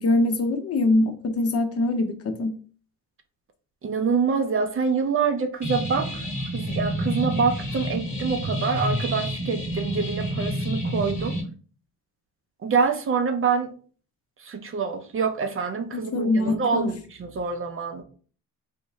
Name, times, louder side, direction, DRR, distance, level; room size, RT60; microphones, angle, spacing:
voice 1, 0.0-2.5 16.1-16.9, left 2 dB, 45° left, 7 dB, 0.7 m, -23 dB
voice 2, 3.8-6.1 6.5-11.4 12.6-13.7 14.4-18.0, right 5 dB, 40° right, 6 dB, 0.6 m, -26 dB
sound 1, 5.6-11.4, equal, 20° left, 1.1 m, -29 dB
3.5 x 2.6 x 3.0 m, 0.41 s
cardioid pair, 80°, 34 cm